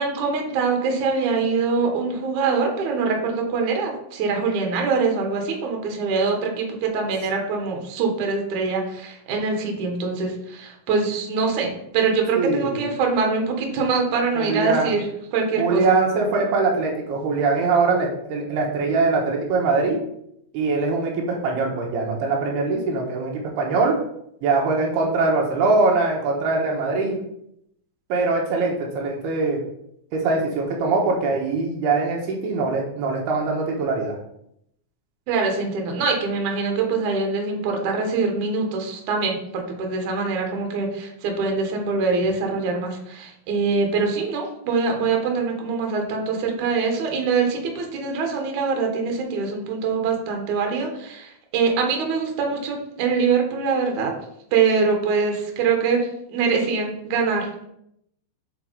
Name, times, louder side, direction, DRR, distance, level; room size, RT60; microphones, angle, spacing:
voice 1, 0.0-15.0 15.3-16.0 35.3-54.1 54.5-57.7, right 4 dB, 60° right, 2 dB, 2.5 m, -24 dB
voice 2, 12.4-12.8 14.4-14.9 15.6-20.0 20.5-24.0 24.4-27.2 28.1-29.6 30.1-34.2, right 3 dB, 80° right, -1 dB, 3.2 m, -22 dB
7.8 x 4.6 x 4.7 m, 0.75 s
omnidirectional pair, 4.6 m